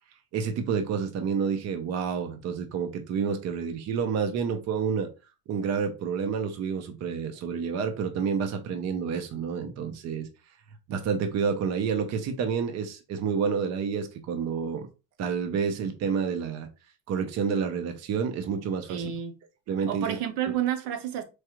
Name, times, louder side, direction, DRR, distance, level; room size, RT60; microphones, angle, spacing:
voice 1, 0.3-5.1 5.5-10.3 10.9-14.9 15.2-16.7 17.1-19.1 19.7-20.2, right 6 dB, 40° right, 0.7 m, -29 dB
voice 2, 18.9-19.3 19.9-21.2, right 10 dB, 75° right, 0.8 m, -30 dB
4.6 x 2.4 x 2.9 m
cardioid pair, 155°, 39 cm